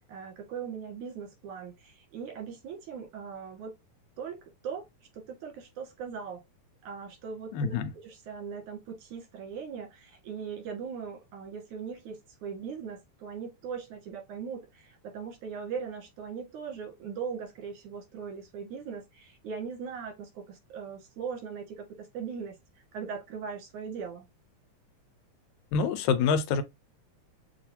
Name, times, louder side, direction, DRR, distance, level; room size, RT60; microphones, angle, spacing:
voice 1, 0.1-3.7 4.2-4.4 4.6-4.8 5.1-6.4 6.8-22.6 22.9-24.3, right 6 dB, 85° right, 3.2 m, -39 dB
voice 2, 7.5-7.9 25.7-26.6, left 5 dB, 80° left, 2.1 m, -26 dB
6.4 x 2.4 x 2.7 m
omnidirectional pair, 3.3 m